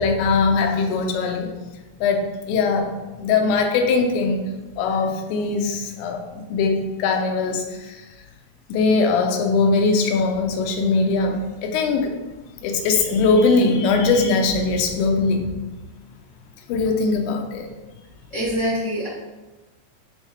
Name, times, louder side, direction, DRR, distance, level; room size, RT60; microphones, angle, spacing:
voice 1, 0.0-1.5 2.0-2.9 3.2-4.4 4.8-8.0 8.7-12.2 12.6-15.5 16.7-17.7, left 4 dB, 90° left, 3 dB, 3.1 m, -21 dB
voice 2, 18.3-19.1, equal, 30° left, -11 dB, 1.4 m, -24 dB
9.5 x 3.8 x 3.3 m, 1.1 s
omnidirectional pair, 5.1 m